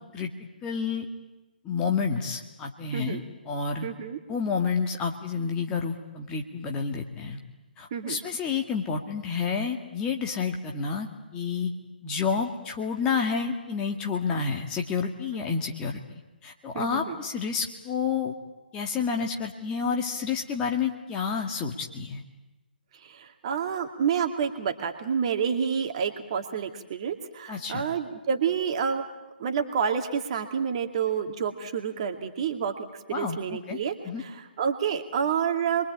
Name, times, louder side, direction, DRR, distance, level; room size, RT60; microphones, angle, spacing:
voice 1, 0.6-1.1 1.7-3.9 4.3-7.4 7.8-11.7 12.0-16.0 16.4-18.3 18.7-22.2 27.5-27.8 33.1-33.8 34.0-34.2, left 5 dB, 15° left, 2 dB, 2.0 m, -29 dB
voice 2, 3.8-4.2 7.9-8.2 15.3-15.4 16.7-17.2 23.0-29.0 29.4-32.7 33.1-35.8, right 7 dB, 35° right, 5 dB, 2.3 m, -29 dB
29.0 x 23.0 x 8.7 m, 1.1 s
figure-of-eight pair, 140°, 6 cm